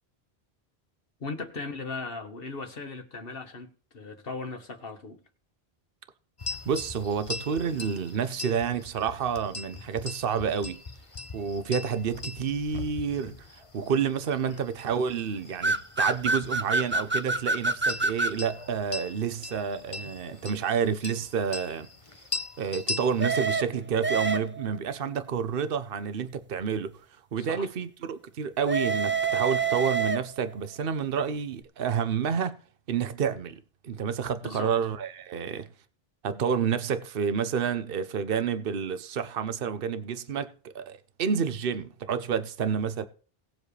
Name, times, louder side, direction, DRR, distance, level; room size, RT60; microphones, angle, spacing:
voice 1, 1.2-5.2 14.4-14.6 27.4-27.7 34.4-34.7, left 3 dB, 65° left, 1.6 m, -38 dB
sound 1, 6.4-23.3, left 3 dB, 35° left, 1.0 m, -41 dB
voice 2, 6.7-10.8 11.3-21.9 22.6-27.0 27.3-32.6 32.9-35.7 36.2-43.0, right 7 dB, 65° right, 1.0 m, -29 dB
sound 2, 15.6-18.4 23.2-24.8 28.6-30.5, right 3 dB, 15° right, 0.4 m, -27 dB
18.5 x 7.3 x 3.3 m
omnidirectional pair, 1.0 m